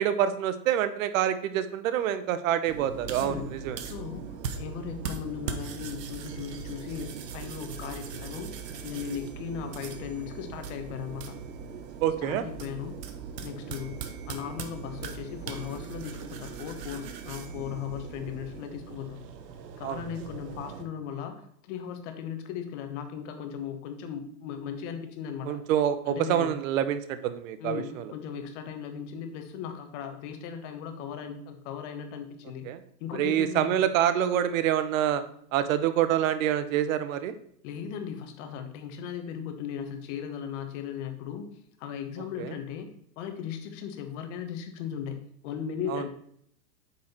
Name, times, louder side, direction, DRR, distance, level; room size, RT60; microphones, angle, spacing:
voice 1, 0.0-3.8 12.0-12.4 19.8-20.0 25.5-28.1 32.6-32.8 33.1-35.2 35.5-37.4 42.4-42.6 45.9-46.0, right 10 dB, 50° right, 12 dB, 0.9 m, -26 dB
sound 1, 2.7-20.8, right 6 dB, 75° right, 1.2 m, -40 dB
voice 2, 3.8-4.3 4.6-8.5 8.8-11.4 12.2-13.0 13.4-14.0 14.3-19.2 19.8-25.6 26.1-26.5 27.6-32.7 33.0-33.7 37.6-41.5 41.8-42.9 43.2-46.1, left 8 dB, 45° left, 6 dB, 1.4 m, -37 dB
8.2 x 4.8 x 4.3 m, 0.68 s
hypercardioid pair, 130°, 50 cm